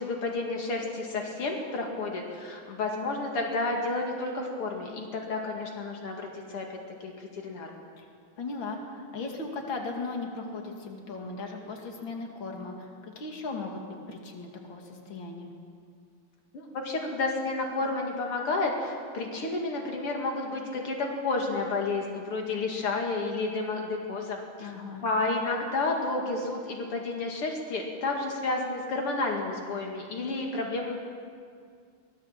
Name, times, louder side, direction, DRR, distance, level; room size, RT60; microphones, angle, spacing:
voice 1, 0.0-7.7 16.5-24.7 25.0-31.0, left 3 dB, 80° left, 1 dB, 3.1 m, -31 dB
voice 2, 8.4-15.5 24.6-25.0, left 3 dB, 60° left, 1 dB, 3.1 m, -37 dB
24.0 x 19.0 x 7.5 m, 2.2 s
omnidirectional pair, 2.4 m